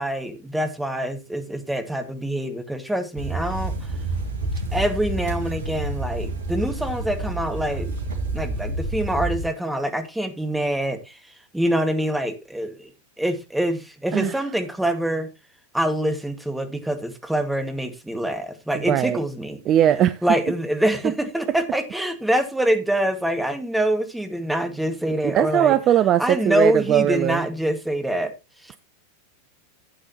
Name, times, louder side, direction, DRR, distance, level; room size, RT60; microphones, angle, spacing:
voice 1, 0.0-3.9 4.7-7.9 8.3-11.2 11.5-12.9 13.2-15.3 15.7-19.6 20.2-25.7 26.2-28.3 28.6-28.8, right 1 dB, 5° right, 1.9 m, -25 dB
sound 1, 3.2-9.5, right 2 dB, 60° right, 2.7 m, -29 dB
voice 2, 18.9-19.2 19.7-20.2 25.3-27.4, right 11 dB, 30° right, 0.5 m, -19 dB
12.5 x 8.7 x 3.0 m
figure-of-eight pair, 90°, 0 cm